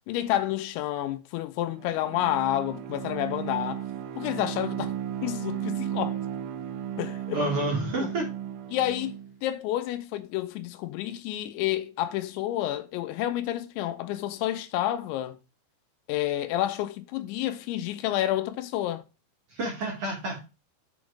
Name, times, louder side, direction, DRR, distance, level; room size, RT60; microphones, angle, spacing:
voice 1, 0.1-3.8 4.2-4.9 5.2-6.2 7.0-7.4 8.0-8.1 8.7-9.1 9.4-15.4 16.1-19.0, left 13 dB, 80° left, 3.0 m, -29 dB
Bowed string instrument, 1.6-9.3, right 10 dB, 80° right, 3.3 m, -35 dB
voice 2, 7.3-8.2 19.5-20.4, right 1 dB, 60° right, 1.5 m, -29 dB
7.8 x 4.2 x 4.7 m
omnidirectional pair, 5.4 m